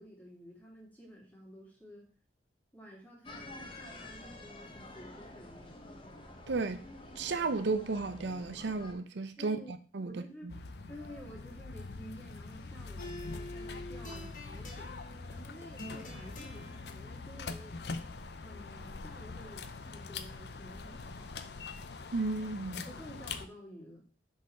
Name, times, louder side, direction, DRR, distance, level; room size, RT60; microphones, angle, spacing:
voice 1, 0.0-2.1 2.7-5.8 9.4-9.7 10.0-10.5 10.9-14.9 15.3-17.8 18.4-21.4 22.9-24.0, equal, 10° left, 2.1 m, -51 dB
sound 1, 3.2-8.9, left 2 dB, 30° left, 0.9 m, -49 dB
voice 2, 6.5-6.9 7.2-9.6 9.9-10.1 10.4-10.5 22.1-22.9, right 3 dB, 75° right, 0.6 m, -33 dB
sound 2, 10.5-23.5, left 4 dB, 65° left, 0.6 m, -44 dB
sound 3, 13.0-19.7, equal, 45° left, 1.7 m, -49 dB
6.3 x 4.0 x 5.4 m
head